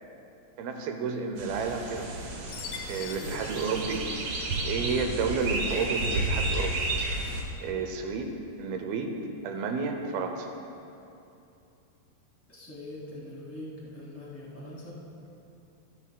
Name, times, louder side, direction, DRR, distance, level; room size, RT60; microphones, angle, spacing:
voice 1, 0.6-2.1 2.9-6.8 7.6-8.3 8.6-9.1 9.4-10.5, right 4 dB, 80° right, 5 dB, 2.4 m, -31 dB
sound 1, 1.4-7.4, right 2 dB, 60° right, 2.4 m, -32 dB
Chime, 2.5-4.8, left 7 dB, 80° left, 2.5 m, -44 dB
voice 2, 12.5-14.9, left 1 dB, 15° left, -7 dB, 0.6 m, -42 dB
23.0 x 9.9 x 2.2 m, 2.8 s
omnidirectional pair, 4.8 m